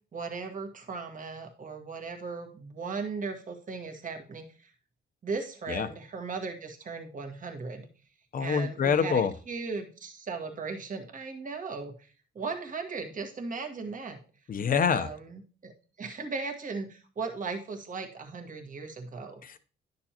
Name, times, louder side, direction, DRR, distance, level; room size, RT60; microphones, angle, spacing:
voice 1, 0.1-4.7 5.2-7.9 8.4-12.1 12.3-14.2 14.9-15.7 16.0-19.4, right 4 dB, 40° right, 4 dB, 1.5 m, -37 dB
voice 2, 8.3-9.3 14.5-15.1 19.4-19.6, left 6 dB, 45° left, 11 dB, 0.7 m, -26 dB
10.0 x 6.6 x 2.9 m, 0.38 s
cardioid pair, 90°, 20 cm